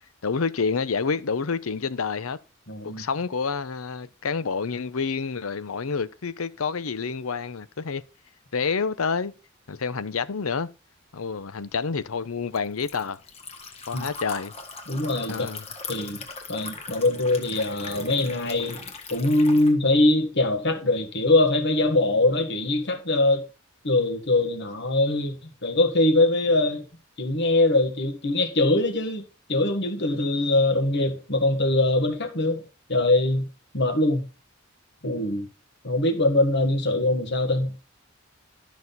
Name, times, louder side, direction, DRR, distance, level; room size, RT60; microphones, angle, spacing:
voice 1, 0.2-2.4 2.8-8.0 8.5-9.3 9.7-10.7 11.1-13.2 13.9-14.5 15.3-15.7, left 5 dB, 85° left, 0.7 m, -28 dB
voice 2, 2.7-3.0 13.9-14.0 14.9-15.5 15.9-16.2 16.5-18.8 19.1-23.4 23.8-25.4 25.6-26.8 27.2-29.2 29.5-32.6 32.9-33.5 33.7-34.2 35.0-35.5 35.8-37.7, left 2 dB, 55° left, 1.7 m, -22 dB
Liquid, 11.5-19.7, left 4 dB, 30° left, 1.5 m, -40 dB
12.0 x 6.2 x 4.0 m
head